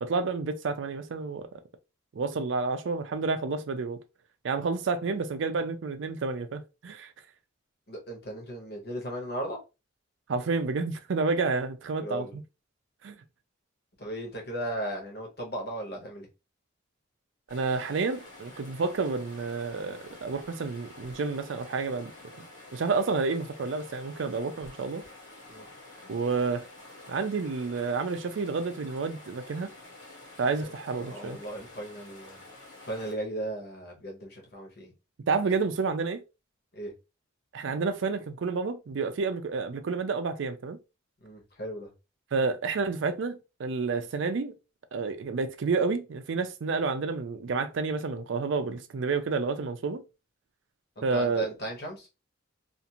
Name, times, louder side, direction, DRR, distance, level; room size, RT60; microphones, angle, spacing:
voice 1, 0.0-1.5 2.1-4.0 4.4-7.1 10.3-12.4 13.0-13.2 17.5-22.1 22.4-22.5 22.7-25.0 26.1-26.6 27.1-29.7 30.4-31.4 35.3-36.2 37.5-40.8 42.3-44.5 44.9-50.0 51.0-51.5, right 4 dB, 65° right, 0.4 m, -30 dB
voice 2, 7.9-9.6 12.0-12.4 14.0-16.3 25.5-25.7 30.6-30.7 31.0-32.4 32.9-34.9 35.5-35.6 36.7-36.9 41.2-41.9 51.0-52.1, right 1 dB, 55° left, 1.0 m, -36 dB
sound 1, 17.5-33.1, left 2 dB, 80° left, 1.2 m, -49 dB
2.5 x 2.5 x 2.8 m
head